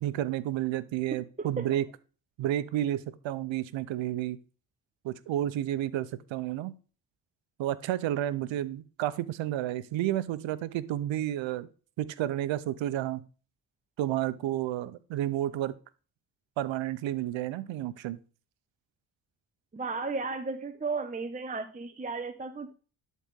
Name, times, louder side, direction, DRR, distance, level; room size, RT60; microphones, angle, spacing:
voice 1, 0.0-1.8 2.4-4.4 5.0-6.7 7.6-11.7 12.0-13.2 14.0-15.7 16.6-18.2, right 13 dB, 85° right, 16 dB, 0.7 m, -31 dB
voice 2, 1.4-1.8 19.7-22.7, right 4 dB, 20° right, 8 dB, 0.7 m, -34 dB
11.0 x 4.2 x 3.5 m, 0.37 s
cardioid pair, 85°, 44 cm